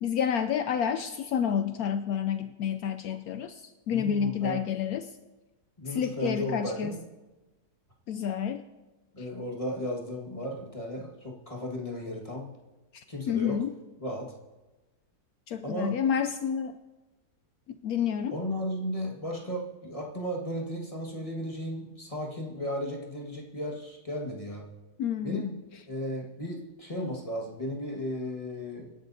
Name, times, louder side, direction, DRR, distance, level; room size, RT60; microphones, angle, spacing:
voice 1, 0.0-5.1 5.9-7.0 8.1-8.6 12.9-13.7 15.5-16.7 17.7-18.4 25.0-25.4, left 8 dB, 70° left, 9 dB, 1.0 m, -29 dB
voice 2, 3.9-4.7 5.8-7.0 9.1-12.5 13.1-13.6 14.0-14.3 15.6-15.9 18.3-24.6 25.2-28.9, equal, 20° left, -2 dB, 1.7 m, -35 dB
26.0 x 11.0 x 2.7 m, 1.1 s
omnidirectional pair, 1.7 m